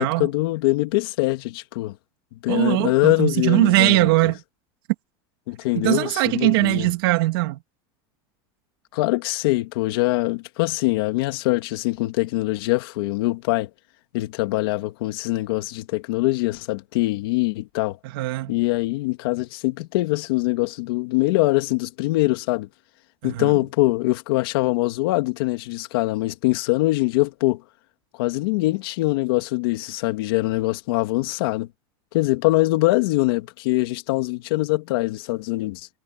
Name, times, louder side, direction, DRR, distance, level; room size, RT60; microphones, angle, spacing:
voice 1, 0.0-1.9 2.3-4.1 5.5-6.9 8.9-13.7 14.1-18.0 18.5-22.7 23.2-27.6 28.2-31.7 32.1-35.9, left 20 dB, 70° left, 2.7 m, -23 dB
voice 2, 2.5-4.4 5.8-7.6 18.0-18.6 23.2-23.5, right 21 dB, 65° right, 2.6 m, -21 dB
supercardioid pair, 170°, 13 cm